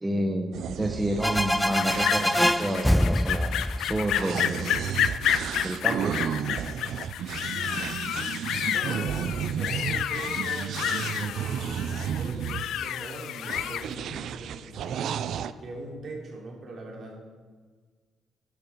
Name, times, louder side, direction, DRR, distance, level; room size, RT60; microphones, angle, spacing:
voice 1, 0.0-4.7 5.6-6.2, right 1 dB, 15° right, 4 dB, 1.0 m, -30 dB
sound 1, 0.5-12.7 13.5-15.5, right 8 dB, 70° right, 0.5 m, -33 dB
sound 2, 1.2-4.8, equal, 5° left, 0.3 m, -25 dB
sound 3, 1.6-13.9, left 10 dB, 80° left, 0.5 m, -30 dB
voice 2, 7.5-15.1 15.6-17.2, right 2 dB, 55° right, -1 dB, 3.8 m, -41 dB
14.5 x 11.0 x 4.7 m, 1.5 s
cardioid pair, 90°, 0 cm